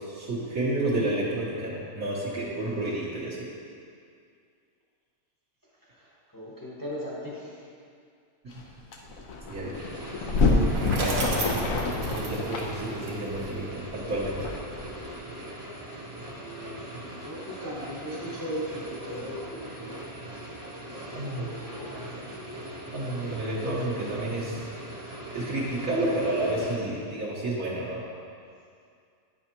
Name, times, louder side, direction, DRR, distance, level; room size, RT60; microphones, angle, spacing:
voice 1, 0.0-3.5 9.5-9.7 10.8-11.4 12.1-13.8 14.1-14.5 21.1-21.5 22.9-24.6 25.3-28.0, right 1 dB, 65° right, -7 dB, 1.7 m, -30 dB
voice 2, 5.9-7.7 8.5-8.7 16.2-20.1 20.8-21.0 21.3-22.0, equal, 15° left, -7 dB, 1.1 m, -39 dB
sound 1, 8.5-8.6 8.9-15.1, left 3 dB, 70° left, 1.1 m, -27 dB
sound 2, 9.7-26.8, right 1 dB, 20° right, 0.9 m, -40 dB
Bicycle, 10.3-13.5, right 2 dB, 50° right, 1.0 m, -35 dB
9.1 x 5.6 x 2.9 m, 2.3 s
omnidirectional pair, 1.6 m